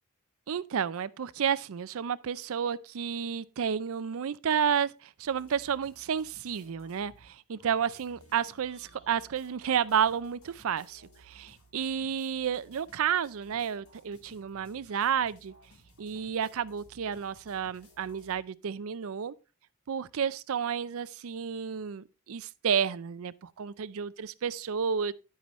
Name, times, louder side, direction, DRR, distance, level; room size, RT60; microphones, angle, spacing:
voice 1, 0.5-15.5 16.0-19.3 19.9-25.1, right 7 dB, 70° right, 0.5 m, -31 dB
sound 1, 5.2-7.3 7.6-18.4, equal, 90° left, 3.8 m, -59 dB
10.5 x 9.4 x 3.1 m
head